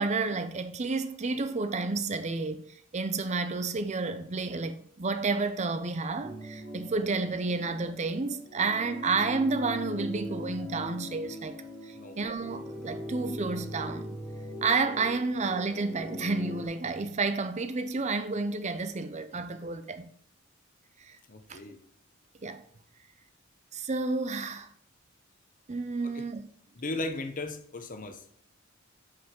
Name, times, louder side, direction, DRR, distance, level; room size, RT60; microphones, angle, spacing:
voice 1, 0.0-2.7 2.9-11.6 11.8-14.2 14.6-20.1 21.0-21.2 21.5-21.6 22.4-22.6 23.7-24.7 25.7-26.5, right 3 dB, 35° right, 0.6 m, -30 dB
sound 1, 6.2-16.7, left 1 dB, ahead, 1.2 m, -40 dB
voice 2, 21.3-21.8 26.1-26.2 26.7-28.2, left 2 dB, 40° left, 0.9 m, -36 dB
8.5 x 5.2 x 3.7 m
head